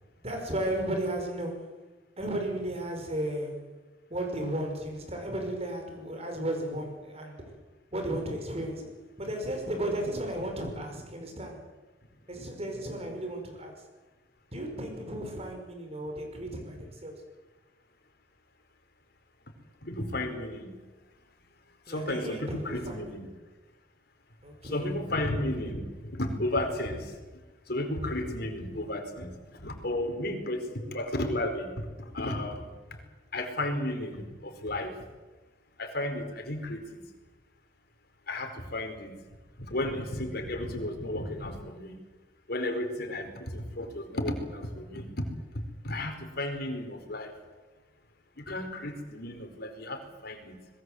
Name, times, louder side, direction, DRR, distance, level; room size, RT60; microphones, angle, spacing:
voice 1, 0.2-1.8 2.2-3.7 4.1-7.5 7.9-11.6 12.3-13.8 14.5-17.2 21.9-23.2 24.4-24.9, right 1 dB, 35° right, 3 dB, 5.8 m, -34 dB
voice 2, 19.8-20.7 21.9-23.3 24.6-27.2 27.7-29.3 29.6-31.7 32.0-32.7 33.3-34.9 35.8-36.8 38.3-39.1 39.6-41.9 42.5-45.2 45.8-47.3 48.4-50.6, left 1 dB, 55° left, 5 dB, 4.7 m, -33 dB
25.5 x 21.0 x 8.0 m, 1.2 s
head